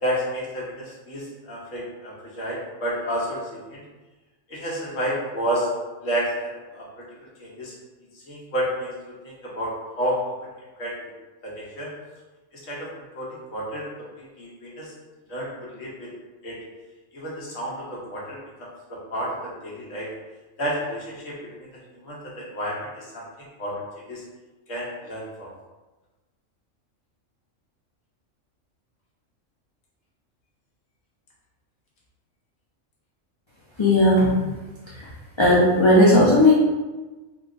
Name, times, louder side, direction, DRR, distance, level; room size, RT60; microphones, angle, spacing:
voice 1, 0.0-3.8 4.5-5.7 6.0-6.9 7.4-7.7 8.1-10.5 10.8-10.9 11.4-11.9 12.6-12.9 13.1-13.9 14.2-14.9 15.3-16.1 16.4-16.6 17.1-20.1 20.6-21.7 22.0-23.2 23.6-23.7 24.1-24.2 24.7-25.5, equal, 85° left, -5 dB, 1.4 m, -30 dB
voice 2, 33.8-34.3 35.4-36.5, left 1 dB, 35° left, -7 dB, 0.5 m, -15 dB
3.9 x 3.0 x 2.5 m, 1.2 s
omnidirectional pair, 1.3 m